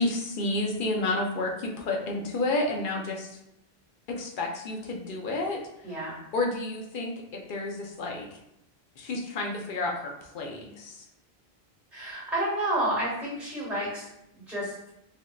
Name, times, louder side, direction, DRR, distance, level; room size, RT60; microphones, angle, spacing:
voice 1, 0.0-3.4 4.1-5.6 6.3-8.3 9.0-11.0, left 2 dB, 60° left, 1 dB, 0.7 m, -30 dB
voice 2, 5.8-6.2 11.9-14.1 14.5-14.7, right 1 dB, ahead, -8 dB, 1.4 m, -30 dB
3.4 x 2.6 x 2.3 m, 0.81 s
omnidirectional pair, 1.0 m